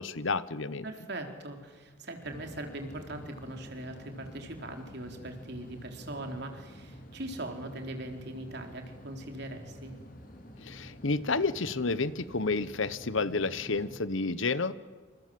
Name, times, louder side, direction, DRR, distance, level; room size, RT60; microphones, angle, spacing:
voice 1, 0.0-0.8 10.6-14.7, left 3 dB, 65° left, 15 dB, 1.1 m, -30 dB
voice 2, 0.8-9.9, right 1 dB, 50° right, 4 dB, 3.8 m, -40 dB
sound 1, 2.2-14.0, equal, 40° left, 3.3 m, -48 dB
28.5 x 26.5 x 7.8 m, 1.4 s
head